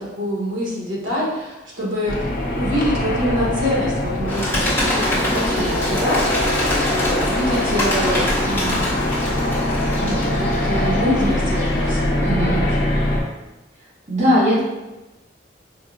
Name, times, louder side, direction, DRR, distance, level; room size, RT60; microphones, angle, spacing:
voice 1, 0.0-2.2 2.6-8.8 9.9-12.8, left 1 dB, 75° right, -5 dB, 1.1 m, -25 dB
sound 1, 2.1-13.2, left 1 dB, 45° left, 0.5 m, -23 dB
Bird, 4.3-12.0, left 1 dB, 10° left, 0.8 m, -25 dB
voice 2, 12.2-12.6 14.1-14.6, equal, 35° right, -7 dB, 0.9 m, -18 dB
4.4 x 2.0 x 2.5 m, 1.0 s
head